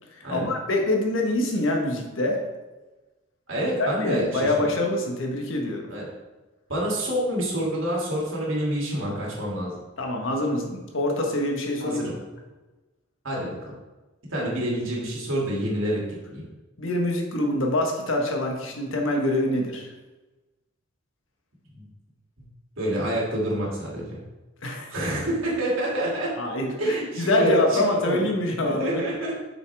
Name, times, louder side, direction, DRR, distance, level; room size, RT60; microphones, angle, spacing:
voice 1, 0.2-2.4 3.8-5.9 10.0-12.0 16.8-19.9 24.6-24.9 26.4-29.0, left 1 dB, 70° left, 1 dB, 1.3 m, -25 dB
voice 2, 3.5-4.5 5.9-6.1 6.7-9.7 11.8-12.1 13.2-13.7 14.3-16.4 21.7-21.8 22.8-24.2 24.9-26.3 26.8-28.3 28.7-29.3, right 1 dB, 75° right, -4 dB, 2.7 m, -27 dB
7.5 x 6.3 x 3.5 m, 1.1 s
head